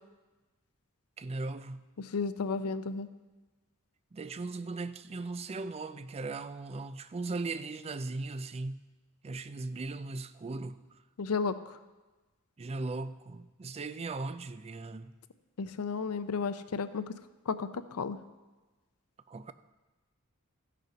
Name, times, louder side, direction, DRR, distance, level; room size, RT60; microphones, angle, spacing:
voice 1, 1.2-1.9 4.1-8.8 9.2-10.8 12.6-15.2 19.3-19.5, right 3 dB, 30° right, 0.4 m, -38 dB
voice 2, 2.1-3.1 11.2-11.6 15.6-17.1 17.5-18.2, left 5 dB, 85° left, 0.5 m, -33 dB
14.0 x 6.7 x 5.1 m
head